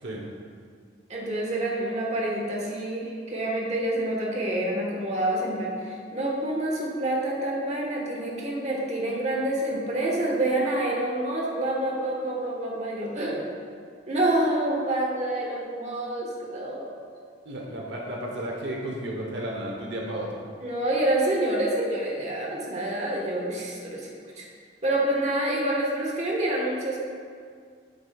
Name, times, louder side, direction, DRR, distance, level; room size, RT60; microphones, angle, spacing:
voice 1, 1.1-13.5 14.1-16.9 20.6-24.5 24.8-27.0, right 1 dB, 40° right, -2 dB, 1.3 m, -27 dB
voice 2, 17.4-20.4, right 1 dB, 75° right, -1 dB, 1.0 m, -33 dB
8.5 x 8.0 x 2.3 m, 2.1 s
head